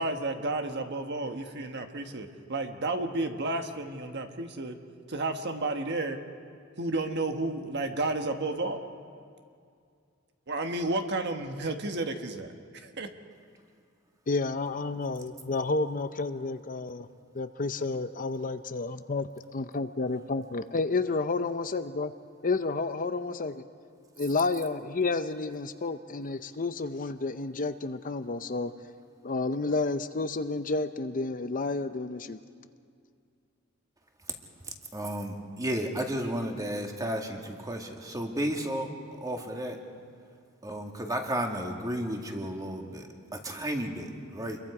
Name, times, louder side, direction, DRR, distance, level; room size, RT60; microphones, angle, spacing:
voice 1, 0.0-4.8 5.1-6.2 6.8-8.9 10.5-13.1, right 2 dB, 55° right, 6 dB, 1.3 m, -32 dB
voice 2, 14.3-17.1 17.3-19.2 19.5-22.1 22.4-23.6 24.2-28.7 29.2-32.4, left 3 dB, 40° left, 10 dB, 0.6 m, -30 dB
voice 3, 34.9-38.9 39.2-39.8 40.6-43.1 43.3-44.6, right 1 dB, 15° right, 2 dB, 1.9 m, -33 dB
28.0 x 22.5 x 4.9 m, 2.3 s
head